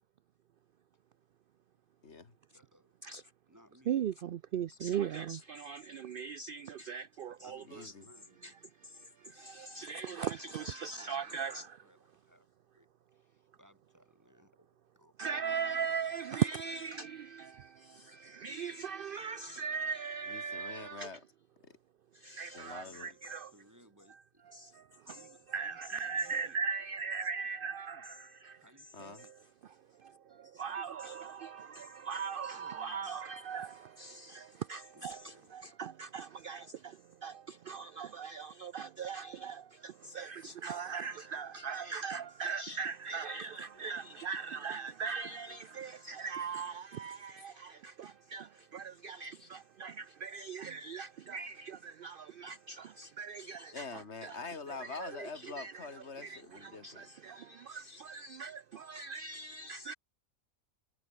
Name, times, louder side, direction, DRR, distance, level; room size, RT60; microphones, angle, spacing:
voice 1, 2.0-2.3 7.7-8.0 20.3-21.2 21.6-21.8 22.5-23.1 27.9-28.0 28.9-29.2 43.7-43.8 45.5-45.6 47.7-47.8 53.7-57.1, left 4 dB, 50° left, 2.3 m, -45 dB
voice 2, 2.5-3.9 7.3-8.6 10.0-12.5 12.7-14.7 14.9-15.1 16.6-17.2 22.3-24.7 25.0-26.6 28.6-29.3 29.6-29.8 30.6-30.8 32.5-33.5 34.2-34.3 34.9-35.7, equal, 10° right, 7.4 m, -63 dB
voice 3, 3.9-7.9 8.4-8.5 9.2-11.8 15.2-21.1 22.2-23.5 24.5-24.8 25.5-28.6 30.0-54.4 54.8-55.9 56.2-59.9, right 6 dB, 75° right, 0.5 m, -39 dB
omnidirectional pair, 1.5 m